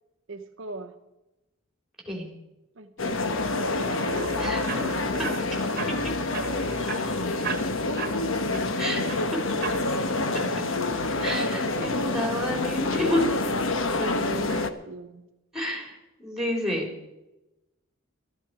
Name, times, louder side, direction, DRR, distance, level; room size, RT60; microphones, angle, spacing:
voice 1, 0.3-0.9 2.8-4.4 6.6-7.3 8.0-9.0 11.1-12.2 14.0-15.3, right 2 dB, 65° right, 5 dB, 0.9 m, -41 dB
sound 1, 3.0-14.7, left 2 dB, 70° left, 1.0 m, -27 dB
sound 2, 3.3-14.7, right 5 dB, 45° right, 1.4 m, -39 dB
voice 2, 4.4-5.5 8.8-9.0 9.8-10.4 11.2-13.4 14.0-14.6 15.5-16.9, left 1 dB, ahead, 0 dB, 4.1 m, -31 dB
15.0 x 13.5 x 4.9 m, 0.94 s
head